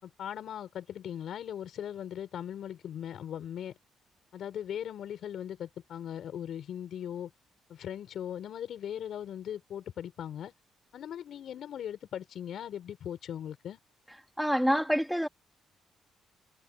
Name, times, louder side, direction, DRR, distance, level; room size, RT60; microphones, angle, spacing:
voice 1, 0.0-3.7 4.3-7.3 7.7-10.5 10.9-13.8, left 10 dB, 65° left, 6.4 m, -39 dB
voice 2, 14.4-15.3, equal, ahead, 3.3 m, -26 dB
cardioid pair, 90°, 0 cm